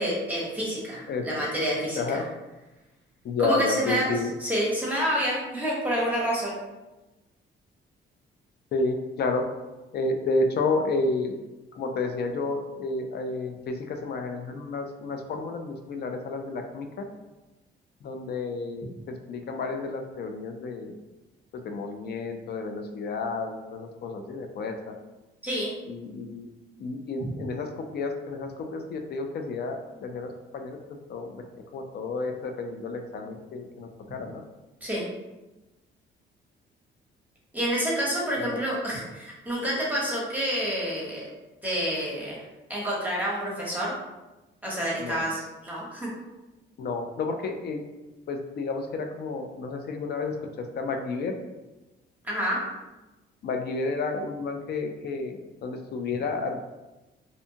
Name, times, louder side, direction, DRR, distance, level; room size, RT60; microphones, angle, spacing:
voice 1, 0.0-2.2 3.4-6.6 25.4-25.7 27.2-27.3 34.8-35.1 37.5-41.2 41.6-42.4 42.7-43.9 44.6-46.1 52.2-52.6, equal, 10° right, -6 dB, 0.9 m, -28 dB
voice 2, 3.2-4.3 8.7-9.4 9.9-11.4 11.8-17.1 18.0-20.9 21.5-24.7 25.9-26.5 26.8-30.8 31.1-31.4 31.7-34.4 38.4-38.6 45.0-45.3 46.8-47.8 48.3-51.4 53.4-56.6, left 3 dB, 55° left, 5 dB, 0.4 m, -31 dB
2.7 x 2.1 x 2.7 m, 1.1 s
cardioid pair, 90°, 20 cm